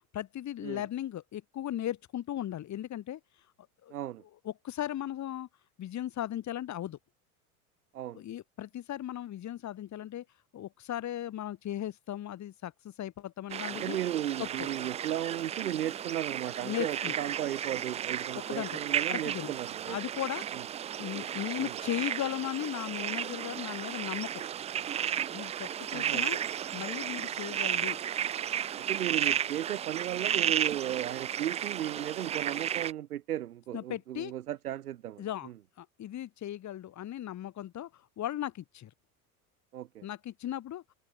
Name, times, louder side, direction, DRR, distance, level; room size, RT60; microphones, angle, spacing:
voice 1, 0.1-3.2 3.8-3.9 4.4-5.5 5.8-7.0 8.1-10.2 10.5-14.0 14.4-14.7 16.6-17.1 18.3-18.8 19.1-19.5 19.9-20.4 21.0-24.4 25.3-26.4 26.7-28.0 33.7-34.3 35.2-35.5 35.8-38.9 40.0-40.8, left 12 dB, 40° left, 2.7 m, -37 dB
voice 2, 3.9-4.2 7.9-8.2 13.7-20.0 20.5-20.6 21.6-21.7 25.9-26.3 28.8-35.5 39.7-40.0, right 12 dB, 85° right, 1.7 m, -35 dB
sound 1, 13.5-32.9, right 9 dB, 15° right, 0.3 m, -34 dB
hypercardioid pair, 85°, 44 cm